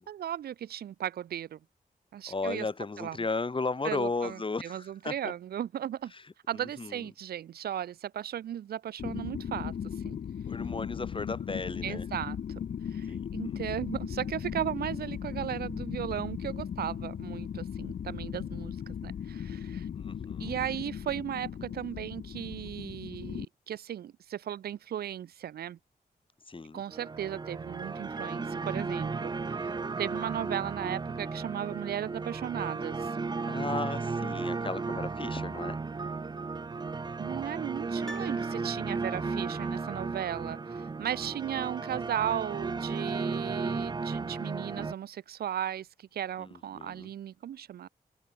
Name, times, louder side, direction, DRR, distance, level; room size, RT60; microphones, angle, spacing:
voice 1, 0.1-1.6 2.1-2.7 3.0-3.2 3.8-6.1 6.5-9.8 10.0-10.2 11.8-12.4 12.9-19.9 20.4-25.8 26.7-33.1 37.2-47.9, right 10 dB, 90° right, 0.7 m, -36 dB
voice 2, 2.3-5.1 6.5-7.0 10.5-12.1 13.1-13.6 19.9-20.5 26.5-26.8 33.5-35.8 46.4-47.1, left 3 dB, 35° left, 2.5 m, -35 dB
sound 1, 9.0-23.4, left 8 dB, 80° left, 2.1 m, -37 dB
sound 2, 26.9-44.9, right 4 dB, 25° right, 0.5 m, -34 dB
Piano, 38.0-39.3 39.6-39.7, equal, 5° left, 6.6 m, -47 dB
cardioid pair, 70°, 16 cm